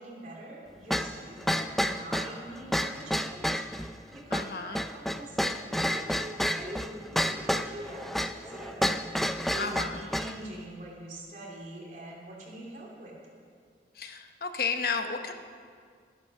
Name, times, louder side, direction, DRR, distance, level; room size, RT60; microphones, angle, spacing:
voice 1, 0.0-8.9 9.3-13.1, right 1 dB, 45° right, -3 dB, 3.0 m, -44 dB
sound 1, 0.9-10.4, equal, ahead, 0.3 m, -30 dB
voice 2, 4.3-4.8 9.6-10.1 13.9-15.3, left 5 dB, 55° left, 7 dB, 0.8 m, -32 dB
13.0 x 11.5 x 6.3 m, 2.1 s
head